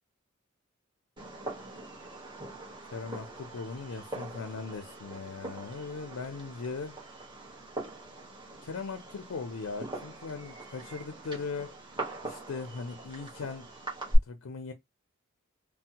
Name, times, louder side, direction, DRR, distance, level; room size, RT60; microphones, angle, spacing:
Fireworks, 1.2-14.2, right 1 dB, 20° right, 1.3 m, -39 dB
voice 1, 2.8-7.0 8.6-11.8 12.2-13.7 14.2-14.7, left 4 dB, 90° left, 0.5 m, -39 dB
3.3 x 2.0 x 2.8 m
head